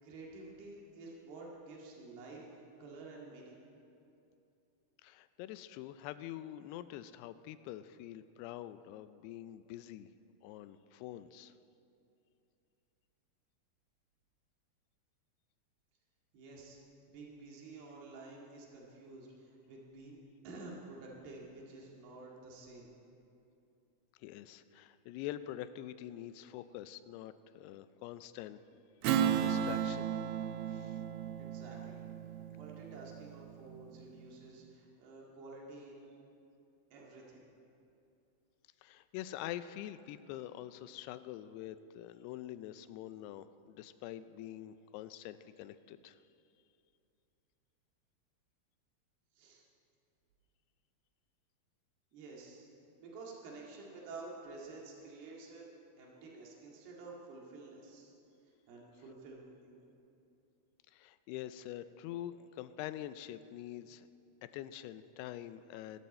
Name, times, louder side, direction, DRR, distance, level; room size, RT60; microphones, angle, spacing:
voice 1, 0.0-3.6 16.3-16.8 17.1-22.9 31.4-32.1 32.5-36.1 36.9-37.4 49.4-49.6 52.1-52.7 53.0-55.7 56.0-58.1 58.7-59.8, right 3 dB, 75° right, -3 dB, 4.1 m, -50 dB
voice 2, 5.0-10.1 10.4-11.5 24.2-28.6 29.4-30.1 30.7-31.0 38.8-46.2 60.9-64.1 64.4-66.0, left 12 dB, 90° left, 13 dB, 2.7 m, -45 dB
Strum, 29.0-33.9, right 9 dB, 90° right, 2.8 m, -35 dB
23.5 x 13.0 x 4.3 m, 2.6 s
omnidirectional pair, 4.6 m